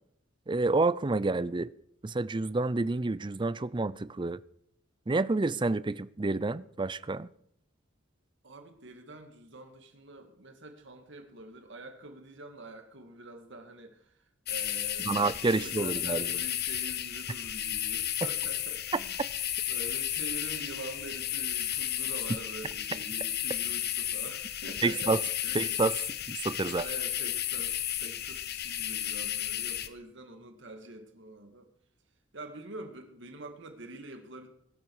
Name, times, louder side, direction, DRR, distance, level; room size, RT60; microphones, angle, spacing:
voice 1, 0.5-1.7 2.0-4.4 5.1-7.3 15.1-16.2 24.8-25.2 25.5-25.9 26.3-26.8, right 3 dB, 25° right, 0.5 m, -28 dB
voice 2, 8.4-19.2 19.7-25.8 26.6-31.7 32.3-34.5, right 2 dB, 65° right, 2.1 m, -46 dB
sound 1, 14.5-29.9, left 11 dB, 55° left, 1.2 m, -33 dB
20.5 x 12.5 x 4.8 m
head